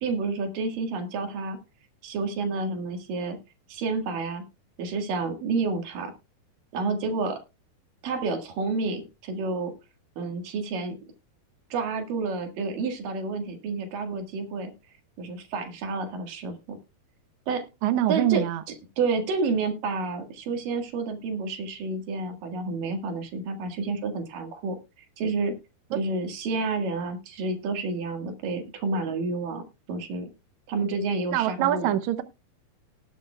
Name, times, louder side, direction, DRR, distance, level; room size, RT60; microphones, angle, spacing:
voice 1, 0.0-1.6 2.0-3.4 3.7-4.4 4.8-6.1 6.7-7.4 8.0-9.7 10.2-11.0 11.7-14.7 15.2-16.8 17.5-17.6 18.1-18.4 19.0-24.8 25.2-25.6 25.9-30.3 30.7-31.9, right 3 dB, 65° right, 3.2 m, -29 dB
voice 2, 17.8-18.6 31.3-32.2, right 12 dB, 80° right, 1.7 m, -24 dB
18.5 x 8.4 x 2.3 m
omnidirectional pair, 4.5 m